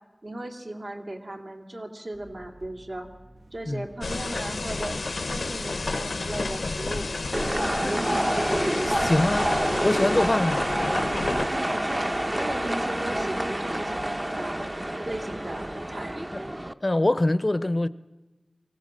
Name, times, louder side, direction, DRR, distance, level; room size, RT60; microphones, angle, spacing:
voice 1, 0.2-3.1 3.5-5.0 5.2-7.1 7.4-8.3 11.3-12.1 12.4-14.7 15.1-16.2, right 1 dB, 65° right, 2.5 m, -37 dB
sound 1, 2.1-15.9, right 1 dB, 85° right, 1.7 m, -51 dB
sound 2, 4.0-11.5, left 3 dB, 85° left, 0.7 m, -31 dB
sound 3, 7.3-16.7, right 1 dB, 20° right, 0.7 m, -28 dB
voice 2, 8.8-9.5 9.8-10.6 16.8-17.9, left 1 dB, 35° left, 0.6 m, -24 dB
23.5 x 17.0 x 7.5 m
wide cardioid pair, 65°, 0 cm